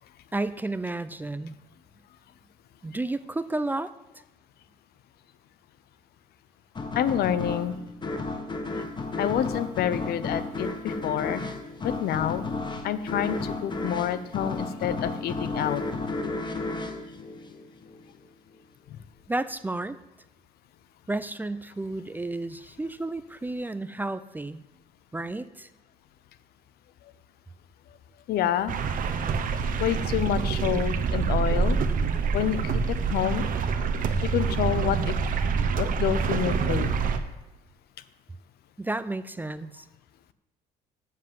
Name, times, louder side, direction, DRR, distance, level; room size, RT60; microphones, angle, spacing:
voice 1, 0.3-1.5 2.8-3.9 19.3-20.0 21.1-24.6 25.1-25.7 38.8-39.8, right 2 dB, 10° right, 14 dB, 0.4 m, -32 dB
sound 1, 6.8-18.0, left 3 dB, 25° left, 1.3 m, -33 dB
voice 2, 7.0-7.8 9.2-11.5 11.8-12.4 12.8-15.8 28.3-28.7 29.8-31.8 32.3-32.7 33.1-33.4 34.3-35.1 35.7-37.0, left 10 dB, 70° left, 14 dB, 0.7 m, -28 dB
sound 2, 28.7-37.2, right 5 dB, 55° right, 0.9 m, -26 dB
7.6 x 7.4 x 7.6 m, 1.0 s
cardioid pair, 110°, 17 cm